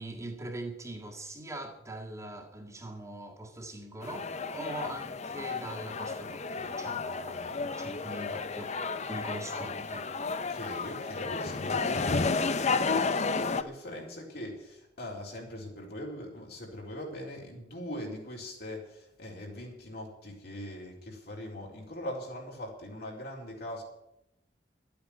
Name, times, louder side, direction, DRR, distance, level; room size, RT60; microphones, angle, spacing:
voice 1, 0.0-10.1, right 2 dB, 20° right, 1.9 m, -42 dB
sound 1, 4.0-13.6, left 4 dB, 40° left, 0.7 m, -32 dB
voice 2, 10.2-23.8, left 1 dB, 65° left, 4.1 m, -41 dB
12.0 x 8.6 x 9.7 m
head